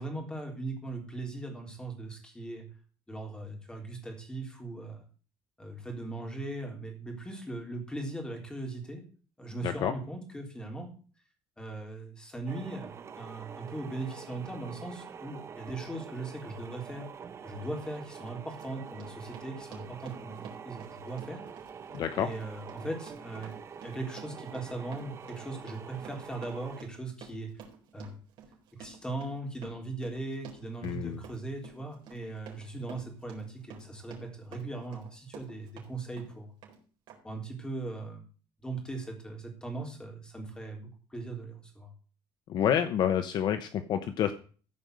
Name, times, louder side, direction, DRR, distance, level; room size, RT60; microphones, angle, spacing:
voice 1, 0.0-2.6 3.1-5.0 5.6-9.0 9.4-10.9 11.6-17.1 17.4-21.4 22.1-23.5 23.8-27.5 27.9-28.2 28.8-36.5 37.2-38.2 38.6-41.9, right 2 dB, 10° left, 2 dB, 3.5 m, -39 dB
voice 2, 9.6-10.0 21.9-22.3 30.8-31.2 42.5-44.3, left 9 dB, 50° left, 10 dB, 0.9 m, -28 dB
sound 1, 12.5-26.8, right 6 dB, 30° right, 0.8 m, -46 dB
Run, 17.6-17.7 18.2-35.9 36.2-36.8 37.1-37.2, right 7 dB, 55° right, 4.2 m, -51 dB
15.0 x 5.3 x 7.8 m, 0.40 s
cardioid pair, 155°, 9 cm